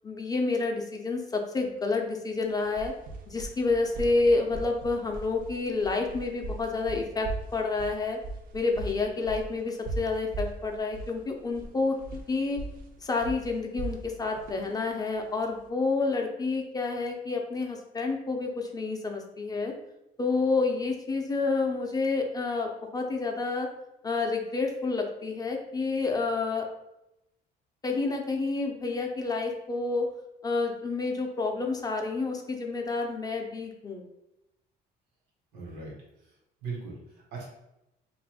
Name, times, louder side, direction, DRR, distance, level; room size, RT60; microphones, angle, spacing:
voice 1, 0.0-2.9 3.3-8.2 8.5-12.6 13.0-19.7 20.2-23.7 24.0-26.7 27.8-30.1 30.4-34.0, left 3 dB, 20° left, 2 dB, 0.5 m, -29 dB
sound 1, 2.4-15.7, right 2 dB, 55° right, 0.5 m, -39 dB
voice 2, 35.5-36.3 36.6-37.5, right 4 dB, 80° right, -3 dB, 1.2 m, -40 dB
2.6 x 2.5 x 3.4 m, 0.89 s
cardioid pair, 110°, 17 cm